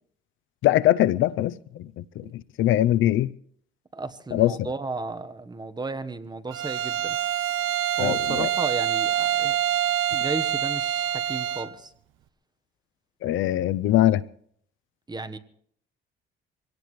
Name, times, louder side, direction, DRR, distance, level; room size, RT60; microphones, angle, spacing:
voice 1, 0.6-2.2 2.6-3.3 4.3-4.5 8.0-8.5 13.2-14.2, left 13 dB, 80° left, 0.6 m, -22 dB
voice 2, 3.9-7.2 8.0-9.6 10.1-11.9 15.1-15.4, right 3 dB, 20° right, 1.2 m, -34 dB
Bowed string instrument, 6.5-11.8, right 11 dB, 80° right, 0.7 m, -26 dB
24.5 x 17.5 x 3.2 m
cardioid pair, 90°, 20 cm